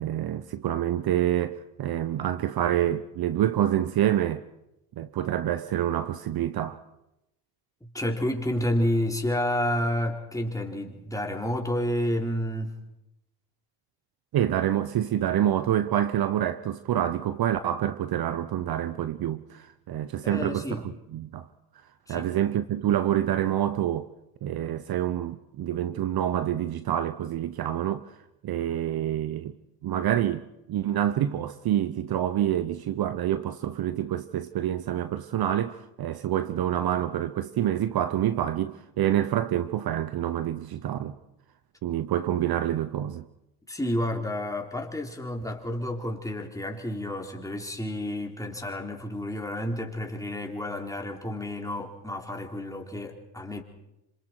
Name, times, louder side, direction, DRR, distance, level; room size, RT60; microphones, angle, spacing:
voice 1, 0.0-4.4 5.0-6.8 14.3-21.5 22.1-24.1 24.4-28.1 28.4-29.5 29.8-41.2 41.8-43.2, right 11 dB, 50° right, 0.9 m, -27 dB
voice 2, 7.9-12.7 20.2-20.9 22.1-22.3 43.7-53.6, left 1 dB, 5° left, 3.8 m, -30 dB
27.5 x 26.0 x 4.7 m
supercardioid pair, 70°, 48 cm